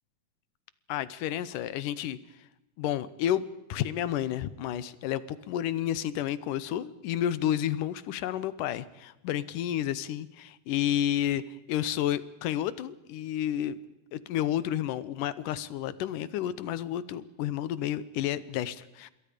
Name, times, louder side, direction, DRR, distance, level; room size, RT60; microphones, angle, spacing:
voice 1, 0.9-2.2 2.8-11.4 11.7-13.8 14.1-19.1, left 11 dB, 75° left, 17 dB, 2.3 m, -31 dB
27.0 x 21.5 x 5.1 m, 0.97 s
omnidirectional pair, 4.1 m